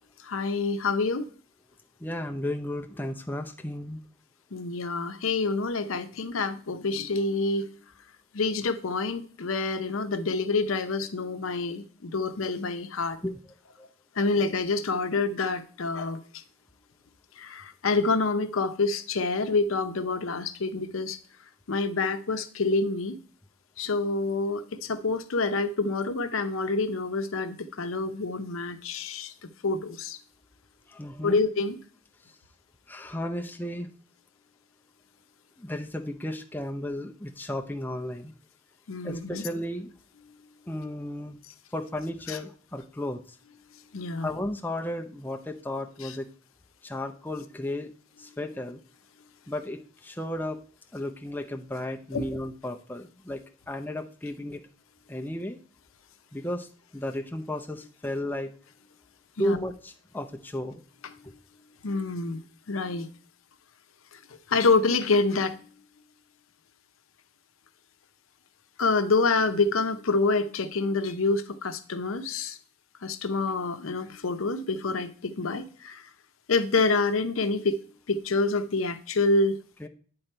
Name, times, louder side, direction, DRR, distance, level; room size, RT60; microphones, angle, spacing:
voice 1, 0.2-1.3 4.5-7.7 8.3-13.2 14.2-16.2 17.4-21.2 21.7-23.2 23.8-29.3 29.6-30.2 31.2-31.8 38.9-39.5 42.3-42.4 43.9-44.3 46.0-46.1 52.1-52.3 59.4-59.6 61.0-61.1 61.8-62.4 62.7-63.1 64.5-65.6 68.8-72.6 73.0-76.0 76.5-77.8 78.1-79.6, left 3 dB, 80° left, 10 dB, 0.7 m, -27 dB
voice 2, 2.0-4.0 13.2-13.3 30.9-31.4 32.9-33.9 35.6-38.3 39.0-39.9 40.7-41.4 41.7-43.4 44.2-46.3 46.8-47.9 48.2-48.8 49.5-50.6 50.9-54.6 55.1-55.6 56.3-58.5 59.4-60.8 79.8-79.9, left 1 dB, 10° left, 3 dB, 0.5 m, -34 dB
9.0 x 3.9 x 4.4 m, 0.43 s
head